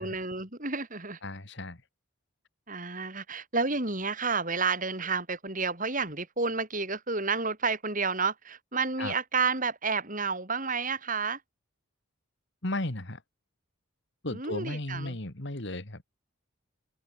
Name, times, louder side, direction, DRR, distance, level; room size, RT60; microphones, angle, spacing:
voice 1, 0.0-1.2 2.7-11.4 14.3-15.2, right 4 dB, 35° right, 4.5 m, -30 dB
voice 2, 1.2-1.8 9.0-9.1 12.6-13.2 14.2-16.0, left 1 dB, 55° left, 2.3 m, -35 dB
open air
head